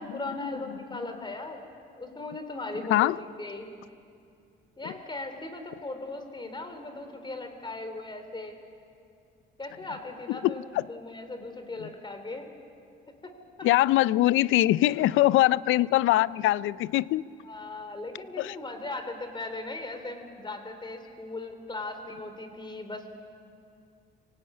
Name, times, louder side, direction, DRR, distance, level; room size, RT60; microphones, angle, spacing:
voice 1, 0.0-1.6 2.0-3.7 4.8-8.6 9.6-10.6 10.9-12.5 13.2-13.3 13.6-13.7 15.2-15.3 17.4-23.1, left 2 dB, 25° left, 7 dB, 3.2 m, -38 dB
voice 2, 10.3-10.8 11.8-11.9 13.6-17.2 18.4-18.6, left 15 dB, 85° left, 20 dB, 0.5 m, -23 dB
25.0 x 17.5 x 8.5 m, 2.5 s
cardioid pair, 90°, 20 cm